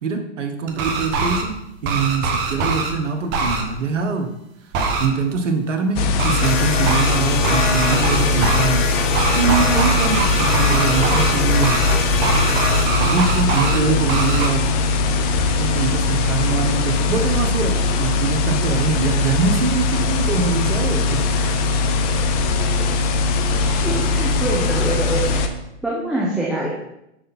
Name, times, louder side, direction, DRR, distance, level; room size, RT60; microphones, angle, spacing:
voice 1, 0.0-4.3 5.0-8.9 9.3-11.8 13.0-14.7 15.5-21.8, right 5 dB, 75° right, 6 dB, 1.3 m, -23 dB
sound 1, 0.7-1.4 1.8-2.9 3.3-3.6 4.7-5.1 6.2-6.5 6.8-7.2 7.4-8.7 9.1-11.3 11.6-11.9 12.2-13.8 14.1-14.5, right 4 dB, 30° right, 1.2 m, -22 dB
sound 2, 6.0-25.5, left 3 dB, 30° left, 0.7 m, -20 dB
sound 3, 6.4-12.9, left 4 dB, 85° left, 1.2 m, -25 dB
voice 2, 23.6-25.5 25.8-26.7, right 2 dB, ahead, -5 dB, 1.1 m, -25 dB
6.7 x 6.3 x 4.2 m, 0.85 s
hypercardioid pair, 130°, 36 cm